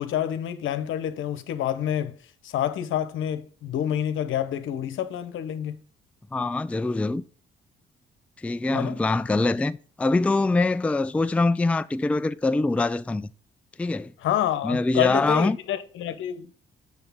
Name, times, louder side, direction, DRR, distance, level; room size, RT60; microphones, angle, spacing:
voice 1, 0.0-2.2 2.4-5.8 8.7-9.0 14.2-16.5, left 10 dB, 80° left, 0.9 m, -28 dB
voice 2, 6.3-7.2 8.4-13.3 13.8-14.1 14.6-15.6, left 3 dB, 5° left, 0.3 m, -24 dB
7.0 x 6.5 x 3.5 m
cardioid pair, 90°, 20 cm